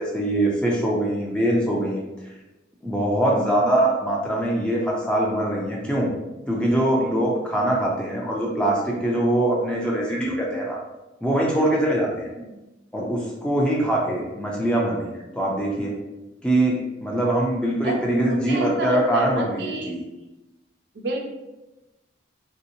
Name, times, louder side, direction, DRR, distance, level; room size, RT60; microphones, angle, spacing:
voice 1, 0.0-2.0 2.8-6.1 6.5-10.8 11.2-12.3 12.9-15.9 16.4-20.0, right 1 dB, 5° left, -3 dB, 0.4 m, -23 dB
voice 2, 13.8-14.1 17.8-19.9 21.0-21.2, right 2 dB, 60° right, 1 dB, 0.5 m, -30 dB
3.1 x 2.8 x 2.6 m, 1.0 s
head